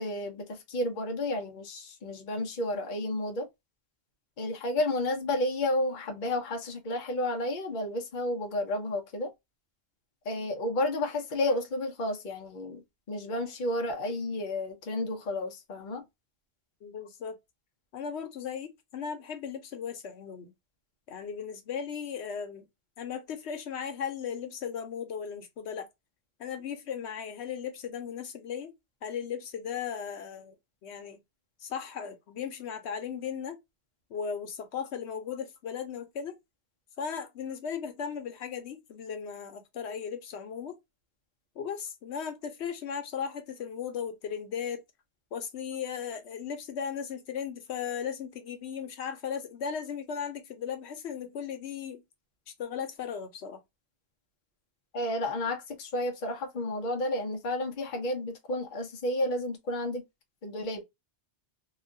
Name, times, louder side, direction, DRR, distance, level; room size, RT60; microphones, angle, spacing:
voice 1, 0.0-3.5 4.4-9.3 10.2-16.0 54.9-60.0 60.4-60.8, left 1 dB, 50° left, 0.8 m, -31 dB
voice 2, 16.8-17.4 17.9-20.5 21.1-22.7 23.0-25.9 26.4-28.7 29.0-30.5 30.8-31.2 31.6-33.6 34.1-36.3 37.0-40.8 41.6-44.8 45.3-52.0 52.6-53.6, left 7 dB, 85° left, 1.0 m, -36 dB
3.0 x 2.4 x 2.6 m
omnidirectional pair, 1.1 m